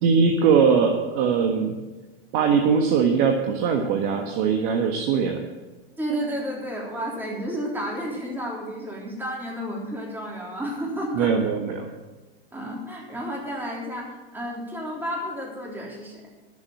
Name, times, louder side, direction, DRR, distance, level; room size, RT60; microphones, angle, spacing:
voice 1, 0.0-1.8 2.3-5.4 11.1-11.9, right 6 dB, 50° right, 3 dB, 1.5 m, -21 dB
voice 2, 6.0-11.3 12.5-16.2, equal, 5° right, -3 dB, 3.4 m, -31 dB
12.0 x 7.6 x 7.4 m, 1.2 s
hypercardioid pair, 120°, 30 cm